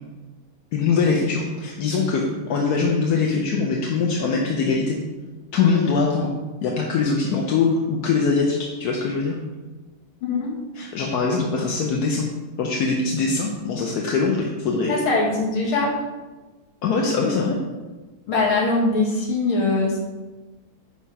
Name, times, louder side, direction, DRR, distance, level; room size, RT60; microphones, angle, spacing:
voice 1, 0.7-5.0 5.5-6.3 6.6-9.4 10.8-12.3 12.6-15.0 16.8-17.6, left 4 dB, 60° left, -1 dB, 1.2 m, -22 dB
voice 2, 14.9-15.9 18.3-20.0, left 3 dB, 80° left, -3 dB, 2.8 m, -21 dB
9.8 x 3.8 x 6.2 m, 1.2 s
omnidirectional pair, 2.3 m